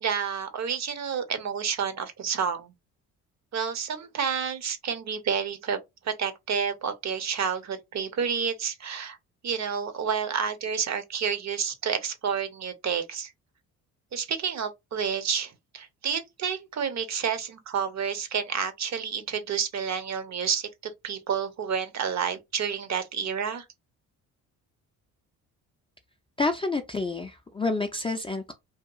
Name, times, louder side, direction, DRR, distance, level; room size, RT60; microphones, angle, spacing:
voice 1, 0.0-2.7 3.5-5.8 6.0-9.2 9.4-13.3 14.1-20.7 21.0-23.6, right 7 dB, 40° right, 0.7 m, -29 dB
voice 2, 26.4-28.5, left 3 dB, 15° left, 0.4 m, -28 dB
2.8 x 2.4 x 2.3 m
hypercardioid pair, 55°, 40 cm